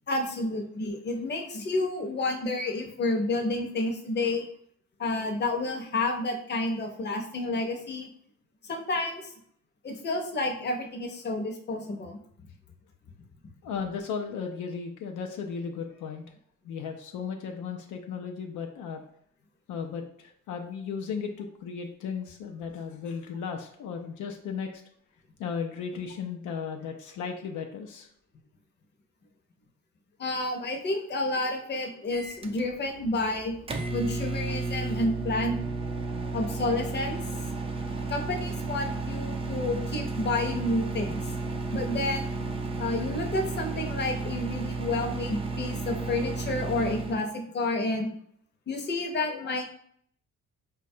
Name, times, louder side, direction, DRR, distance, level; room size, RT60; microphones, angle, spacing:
voice 1, 0.1-4.4 5.0-8.1 8.7-9.3 9.8-12.2 30.2-33.5 33.9-35.6 36.3-37.2 38.1-41.2 41.7-42.3 42.8-48.1 48.7-49.6, left 2 dB, 35° left, 3 dB, 0.7 m, -30 dB
voice 2, 13.6-16.2 16.6-19.0 19.7-24.8 25.4-28.1 49.3-49.6, left 6 dB, 80° left, 3 dB, 0.5 m, -35 dB
Microwave oven, 32.1-47.2, right 3 dB, 20° right, 0.4 m, -33 dB
3.9 x 2.3 x 2.7 m, 0.66 s
cardioid pair, 90°, 30 cm